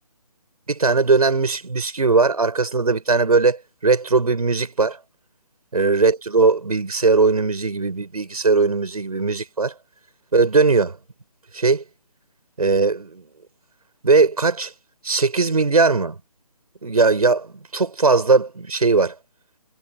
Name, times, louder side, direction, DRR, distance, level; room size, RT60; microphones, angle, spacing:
voice 1, 0.7-5.0 5.7-9.7 10.3-11.0 11.5-11.8 12.6-13.2 14.0-14.7 15.0-16.2 16.8-19.1, right 4 dB, 80° right, 6.0 m, -19 dB
hypercardioid pair, 170°, 19 cm